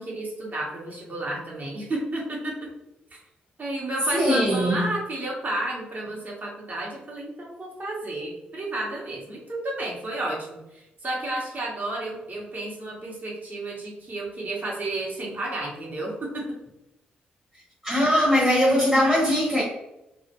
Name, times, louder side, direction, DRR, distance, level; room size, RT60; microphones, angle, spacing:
voice 1, 0.0-2.7 3.6-16.4, right 1 dB, 40° right, 1.0 m, -32 dB
voice 2, 4.1-4.9 17.8-19.6, equal, 10° right, 0.9 m, -21 dB
2.3 x 2.2 x 2.8 m
hypercardioid pair, 40°, 4 cm